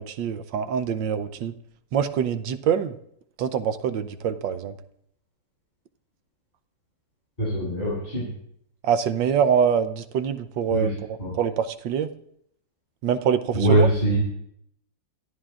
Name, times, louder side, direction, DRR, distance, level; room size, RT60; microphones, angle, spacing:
voice 1, 0.0-1.6 1.9-3.0 3.4-4.7 8.8-12.1 13.0-13.9, right 8 dB, 65° right, 11 dB, 1.3 m, -25 dB
voice 2, 7.4-8.3 10.7-10.9 11.2-11.3 13.5-14.2, right 1 dB, 20° left, -10 dB, 8.3 m, -22 dB
27.0 x 14.5 x 2.5 m, 0.72 s
omnidirectional pair, 2.4 m